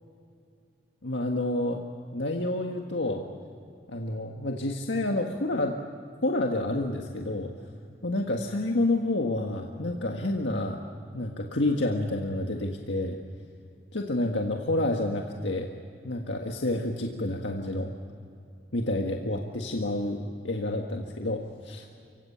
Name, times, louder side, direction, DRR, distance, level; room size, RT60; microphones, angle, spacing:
voice 1, 1.0-1.8 2.1-3.2 3.9-5.8 6.2-7.5 8.0-10.8 11.1-13.2 13.9-15.7 16.0-17.9 18.7-21.9, left 2 dB, 85° left, 1 dB, 1.7 m, -29 dB
29.5 x 17.0 x 8.7 m, 2.5 s
head